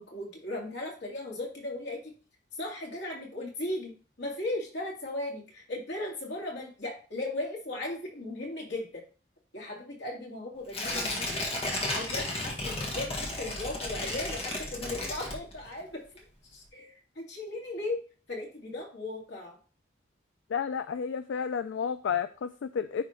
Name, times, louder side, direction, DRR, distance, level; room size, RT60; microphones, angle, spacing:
voice 1, 0.0-2.1 2.5-3.9 4.2-9.0 9.5-11.3 11.9-16.0 16.5-19.6, left 2 dB, 65° left, -2 dB, 2.3 m, -37 dB
Tearing, 10.7-15.8 16.2-16.3, left 1 dB, 30° left, 1.5 m, -33 dB
voice 2, 20.5-23.0, left 7 dB, 85° left, 12 dB, 0.3 m, -31 dB
9.9 x 3.7 x 3.1 m, 0.37 s
head